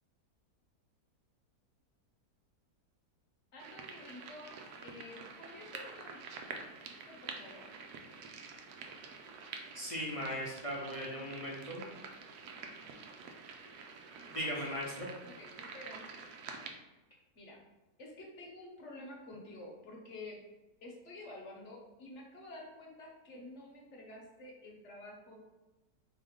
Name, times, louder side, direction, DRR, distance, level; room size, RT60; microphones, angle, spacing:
voice 1, 3.5-6.2 7.1-7.6 15.2-16.0 17.3-17.6 18.0-20.4 20.8-25.4, left 2 dB, 55° left, -1 dB, 1.0 m, -50 dB
sound 1, 3.6-16.7, right 5 dB, 75° right, 1.1 m, -48 dB
voice 2, 9.7-11.9 14.3-15.1, equal, 35° left, -6 dB, 0.5 m, -38 dB
3.7 x 3.1 x 3.5 m, 1.1 s
omnidirectional pair, 1.7 m